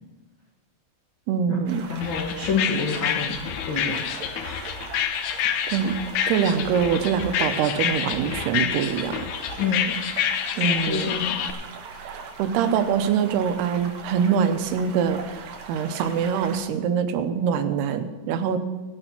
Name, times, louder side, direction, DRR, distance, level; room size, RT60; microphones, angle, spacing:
voice 1, 1.3-1.8 5.7-6.0 6.3-9.3 10.6-11.1 12.0-18.6, right 7 dB, 90° right, 9 dB, 2.9 m, -24 dB
sound 1, 1.7-16.6, right 5 dB, 65° right, 2.8 m, -40 dB
voice 2, 1.9-3.4 3.7-4.0 4.4-4.7 5.8-6.0 9.6-9.9 10.5-11.4, left 5 dB, 70° left, -2 dB, 1.1 m, -28 dB
sound 2, 2.0-11.5, left 9 dB, 90° left, 1.7 m, -28 dB
18.5 x 6.8 x 5.9 m, 1.2 s
omnidirectional pair, 4.5 m